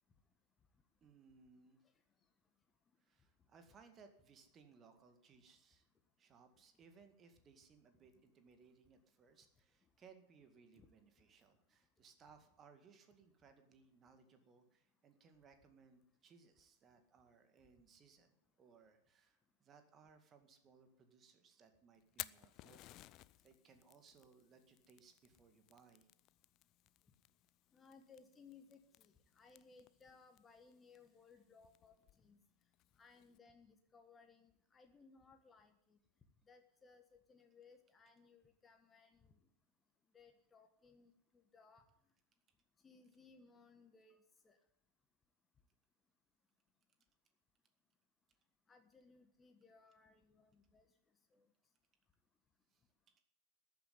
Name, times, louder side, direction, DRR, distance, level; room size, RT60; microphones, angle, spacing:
voice 1, 1.0-1.8 3.0-5.9 6.2-23.0 23.4-26.1 44.1-44.2 52.7-52.8, right 5 dB, 25° right, 7 dB, 2.1 m, -65 dB
Fire, 21.9-33.4, left 16 dB, 35° left, 0.5 m, -57 dB
voice 2, 27.7-32.4 33.0-36.0 36.5-39.3 40.1-41.8 42.8-44.6 48.7-50.9 51.3-51.5, left 5 dB, 15° left, 6 dB, 1.4 m, -64 dB
14.0 x 9.2 x 9.8 m, 0.74 s
figure-of-eight pair, 90°, 0 cm